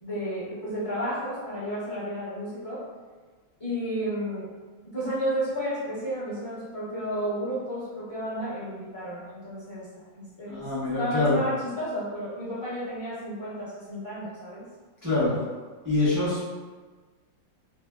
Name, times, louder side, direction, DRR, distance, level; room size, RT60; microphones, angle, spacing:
voice 1, 0.0-2.8 3.6-4.5 4.8-10.7 11.0-14.7, equal, 20° left, -13 dB, 0.8 m, -32 dB
voice 2, 10.5-11.4 15.0-15.4 15.8-16.5, left 2 dB, 25° right, -13 dB, 0.4 m, -25 dB
3.4 x 2.6 x 2.3 m, 1.4 s
omnidirectional pair, 2.1 m